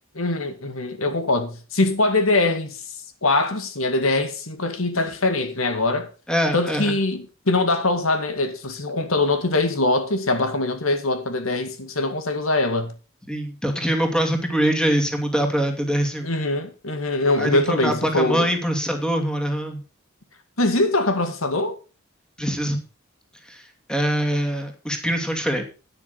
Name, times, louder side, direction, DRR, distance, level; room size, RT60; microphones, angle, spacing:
voice 1, 0.2-2.8 3.2-6.1 6.5-12.9 16.2-18.5 20.6-21.8, left 2 dB, 85° left, 2.0 m, -22 dB
voice 2, 6.3-6.9 13.3-16.3 17.4-19.8 22.4-22.8 23.4-23.6 23.9-25.6, equal, 5° left, 2.7 m, -23 dB
11.5 x 10.0 x 4.0 m
head